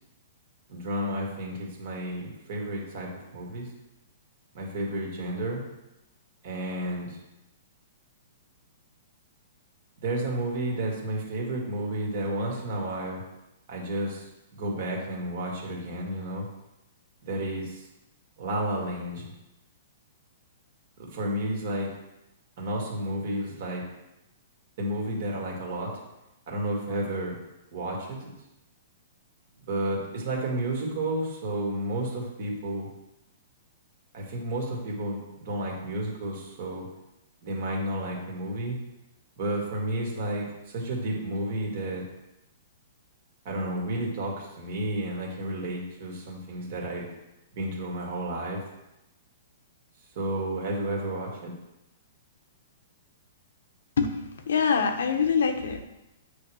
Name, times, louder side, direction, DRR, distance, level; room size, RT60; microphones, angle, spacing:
voice 1, 0.7-3.7 4.5-5.6 6.4-7.2 10.0-13.2 13.7-14.2 14.6-16.5 17.2-17.8 18.4-19.3 21.0-21.9 22.6-23.8 24.8-25.9 26.5-27.4 27.7-28.3 29.7-32.9 34.1-36.9 37.4-38.8 39.4-42.0 43.4-47.1 47.5-48.6 50.2-51.5, right 1 dB, 45° right, -1 dB, 2.1 m, -31 dB
voice 2, 54.0-55.8, left 6 dB, 85° left, 6 dB, 1.0 m, -25 dB
9.0 x 3.5 x 6.3 m, 0.93 s
hypercardioid pair, 170°, 0 cm